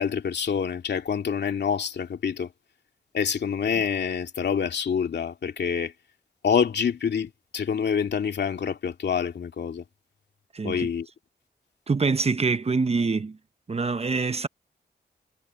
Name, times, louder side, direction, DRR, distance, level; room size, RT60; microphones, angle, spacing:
voice 1, 0.0-2.5 3.1-5.9 6.4-9.8 10.6-11.1, left 7 dB, 70° left, 2.5 m, -26 dB
voice 2, 10.5-10.9 11.9-13.4 13.7-14.5, right 4 dB, 35° right, 0.9 m, -25 dB
cardioid pair, 85°, 18 cm